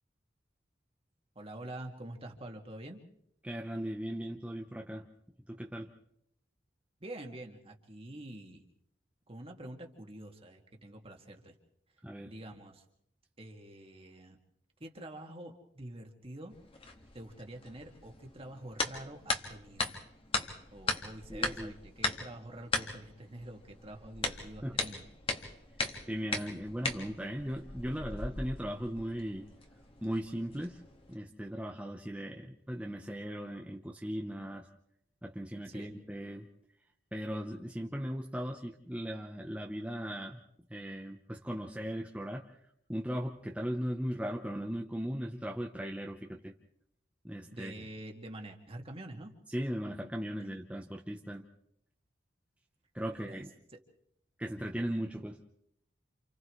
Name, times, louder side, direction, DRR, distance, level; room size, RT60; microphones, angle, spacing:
voice 1, 1.4-3.0 7.0-8.6 9.3-11.6 12.2-12.8 13.4-14.4 14.8-16.5 17.1-19.9 20.7-25.0 27.9-28.1 35.7-35.9 47.5-49.3 50.4-50.5 53.1-53.4 53.7-53.8, right 1 dB, 30° right, 2 dB, 2.2 m, -47 dB
voice 2, 3.4-5.1 5.5-5.9 12.0-12.3 21.3-21.7 24.6-24.8 26.1-29.4 30.0-30.8 31.1-34.7 35.2-36.5 37.1-40.4 40.7-42.5 42.9-46.5 47.2-47.7 49.5-51.4 52.9-53.5 54.4-55.4, equal, 5° right, 1 dB, 0.9 m, -38 dB
sound 1, 16.5-31.1, left 3 dB, 30° left, 1.9 m, -39 dB
29.0 x 28.5 x 3.2 m, 0.76 s
head